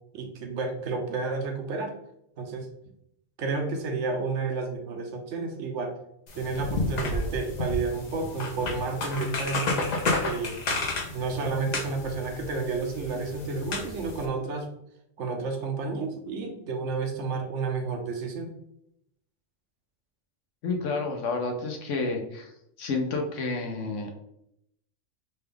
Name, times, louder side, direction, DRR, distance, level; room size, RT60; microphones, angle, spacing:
voice 1, 0.1-1.9 2.4-2.7 3.4-5.9 6.3-9.8 10.2-10.6 11.1-14.7 15.2-18.5, right 4 dB, 75° right, 4 dB, 1.0 m, -31 dB
sound 1, 6.3-14.3, left 2 dB, 45° left, 0.6 m, -31 dB
voice 2, 20.6-22.5 22.8-24.1, left 3 dB, 80° left, 3 dB, 1.0 m, -30 dB
4.2 x 2.3 x 3.4 m, 0.78 s
omnidirectional pair, 1.3 m